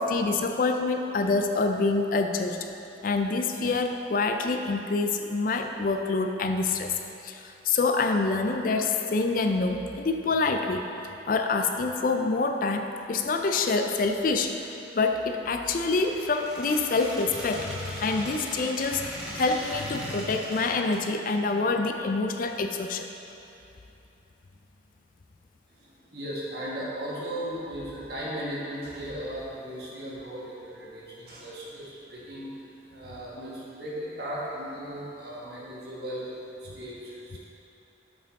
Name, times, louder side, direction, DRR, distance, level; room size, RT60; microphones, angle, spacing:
voice 1, 0.0-2.7 3.0-6.9 7.2-10.9 11.3-14.5 14.9-23.1, left 3 dB, 45° left, 5 dB, 0.4 m, -26 dB
Squeak, 16.0-21.1, equal, 5° right, 1.3 m, -39 dB
voice 2, 25.7-32.5 32.9-36.2 36.6-37.4, equal, 55° right, -6 dB, 1.4 m, -37 dB
7.3 x 5.8 x 3.6 m, 2.9 s
head